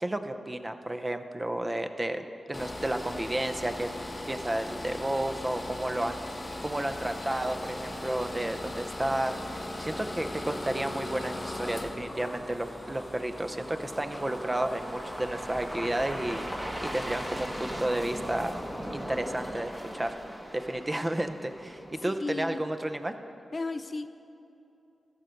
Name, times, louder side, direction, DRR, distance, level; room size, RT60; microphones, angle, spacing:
voice 1, 0.0-3.9 4.3-6.2 6.6-18.5 18.9-20.1 20.5-23.1, right 1 dB, 25° right, 8 dB, 0.6 m, -32 dB
sound 1, 2.5-18.5, left 1 dB, 25° left, 0.8 m, -40 dB
sound 2, 3.7-22.0, equal, 5° right, 1.2 m, -41 dB
voice 2, 21.9-22.7 23.5-24.1, left 3 dB, 45° left, 11 dB, 0.4 m, -35 dB
13.5 x 5.3 x 6.4 m, 2.8 s
cardioid pair, 50°, 0 cm